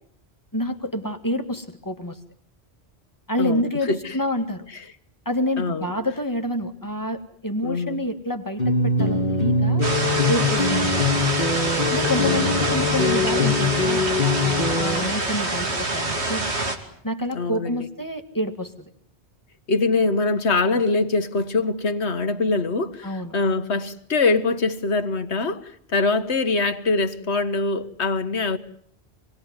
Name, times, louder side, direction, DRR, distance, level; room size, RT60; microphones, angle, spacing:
voice 1, 0.5-2.2 3.3-4.7 5.3-9.8 10.3-11.0 11.9-16.4 17.0-18.9 23.0-23.3, equal, 20° left, 2.2 m, -28 dB
voice 2, 3.4-4.2 5.6-5.9 7.6-8.0 12.2-12.8 17.3-17.9 19.7-28.6, left 3 dB, 85° left, 1.7 m, -23 dB
sound 1, 8.6-15.0, left 3 dB, 45° left, 2.3 m, -22 dB
sound 2, 9.8-16.8, right 2 dB, 85° right, 3.1 m, -25 dB
26.5 x 20.0 x 9.6 m
omnidirectional pair, 1.1 m